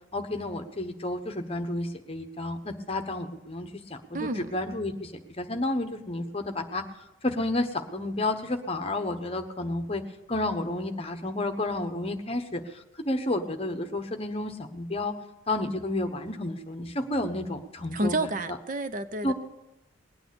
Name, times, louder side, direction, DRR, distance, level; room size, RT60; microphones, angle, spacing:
voice 1, 0.1-6.8 7.2-10.0 10.3-15.1 15.5-18.1 18.5-18.6 19.2-19.3, left 1 dB, 30° left, 7 dB, 1.1 m, -31 dB
voice 2, 4.1-4.5 17.9-19.3, right 2 dB, 40° right, 11 dB, 0.7 m, -30 dB
20.0 x 9.2 x 7.0 m, 0.98 s
head